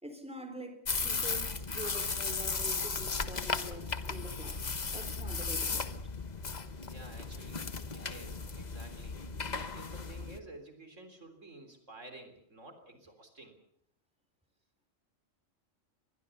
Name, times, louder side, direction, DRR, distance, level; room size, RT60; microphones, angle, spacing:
voice 1, 0.0-6.0, right 1 dB, 5° right, 3.9 m, -46 dB
sound 1, 0.9-10.4, left 4 dB, 35° left, 1.2 m, -36 dB
voice 2, 6.8-7.7 7.9-9.2 9.6-13.6, right 2 dB, 70° right, 4.0 m, -51 dB
24.0 x 21.0 x 7.0 m
omnidirectional pair, 1.3 m